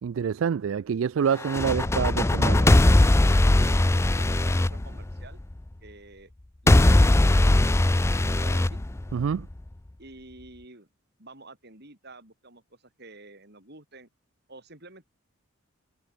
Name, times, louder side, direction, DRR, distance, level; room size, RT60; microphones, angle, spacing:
voice 1, 0.0-2.7 9.1-9.5, right 7 dB, 65° right, 0.3 m, -27 dB
sound 1, 1.4-5.5 6.7-9.5, left 1 dB, 15° left, 0.4 m, -20 dB
voice 2, 3.5-5.4 5.8-6.3 6.6-8.8 10.0-10.9 11.2-14.1 14.5-15.0, right 2 dB, 50° right, 7.4 m, -49 dB
head